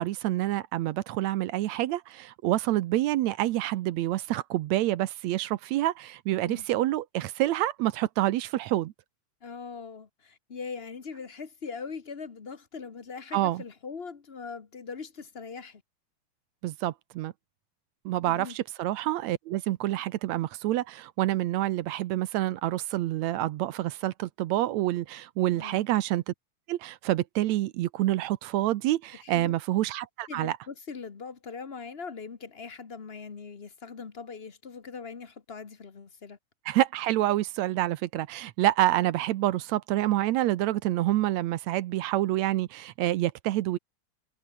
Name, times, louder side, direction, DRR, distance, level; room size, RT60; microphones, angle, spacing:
voice 1, 0.0-8.9 13.3-13.6 16.6-17.3 18.1-26.3 26.7-30.6 36.7-43.8, right 15 dB, 75° right, 2.0 m, -27 dB
voice 2, 9.4-15.8 18.3-18.6 25.5-25.8 29.2-29.5 30.3-36.4, left 5 dB, 55° left, 0.6 m, -41 dB
omnidirectional pair, 3.3 m